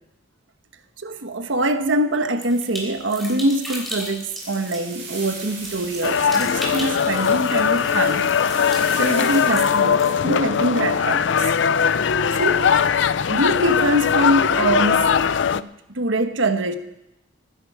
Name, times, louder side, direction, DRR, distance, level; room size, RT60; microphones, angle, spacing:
voice 1, 1.0-8.3 9.0-11.5 12.3-12.7 13.3-16.8, right 1 dB, 70° right, 8 dB, 1.3 m, -24 dB
sound 1, 2.4-10.2, equal, ahead, 3.7 m, -36 dB
sound 2, 4.4-9.5, right 4 dB, 50° right, 6.9 m, -38 dB
sound 3, 6.0-15.6, left 7 dB, 60° left, 0.4 m, -20 dB
21.5 x 10.5 x 4.9 m, 0.89 s
head